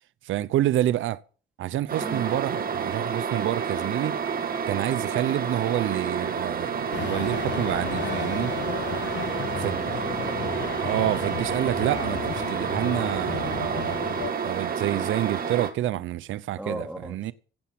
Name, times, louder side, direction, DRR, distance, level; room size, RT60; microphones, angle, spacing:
voice 1, 0.2-1.2 1.6-4.2 4.7-8.5 9.6-9.9 10.8-14.0 14.4-17.3, right 13 dB, 80° right, 0.7 m, -28 dB
sound 1, 1.9-15.7, right 6 dB, 45° right, 2.3 m, -29 dB
sound 2, 6.9-14.3, left 10 dB, 65° left, 0.9 m, -34 dB
voice 2, 9.2-10.7 16.6-17.3, right 1 dB, 5° right, 3.8 m, -38 dB
16.0 x 7.0 x 7.7 m
cardioid pair, 90°, 20 cm